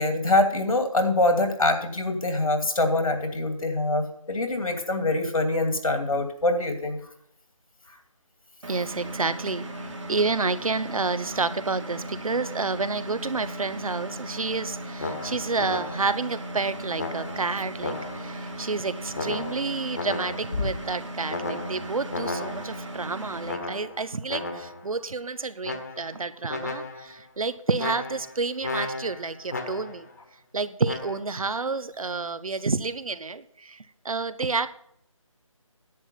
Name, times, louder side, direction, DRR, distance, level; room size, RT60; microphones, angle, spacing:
voice 1, 0.0-7.0, left 2 dB, 85° left, 5 dB, 2.8 m, -24 dB
Engine, 8.6-23.5, right 1 dB, 60° right, 2.5 m, -37 dB
voice 2, 8.7-30.1 30.5-34.7, right 4 dB, 85° right, 15 dB, 0.9 m, -29 dB
sound 1, 15.0-16.3 17.0-18.4 19.1-20.7 21.3-22.9 23.5-24.9 25.6-26.2 26.5-27.2 27.8-30.1 30.8-31.2, left 3 dB, 30° left, 1.2 m, -34 dB
10.5 x 8.7 x 5.7 m, 0.66 s
figure-of-eight pair, 175°, 17 cm